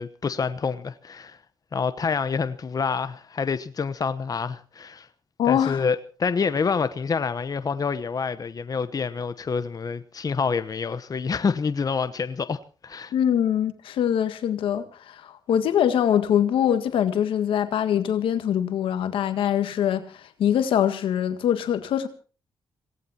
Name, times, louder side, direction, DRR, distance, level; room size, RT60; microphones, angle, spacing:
voice 1, 0.0-1.4 1.7-5.1 5.4-13.1, left 5 dB, 45° left, 1.0 m, -27 dB
voice 2, 5.4-5.8 13.1-22.1, left 9 dB, 85° left, 1.8 m, -23 dB
26.0 x 18.0 x 2.9 m
cardioid pair, 60°, 9 cm